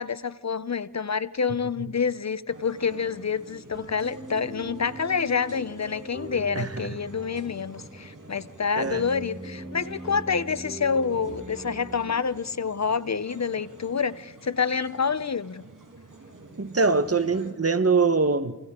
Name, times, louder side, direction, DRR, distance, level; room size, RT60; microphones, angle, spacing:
voice 1, 0.0-15.7, left 6 dB, 50° left, 0.7 m, -28 dB
sound 1, 2.5-17.5, right 2 dB, 65° right, 4.7 m, -48 dB
sound 2, 2.8-12.1, right 2 dB, 20° right, 3.9 m, -42 dB
voice 2, 6.5-7.0 8.8-9.0 16.6-18.6, right 4 dB, 45° right, 1.1 m, -23 dB
29.0 x 27.5 x 3.7 m
wide cardioid pair, 50°, 34 cm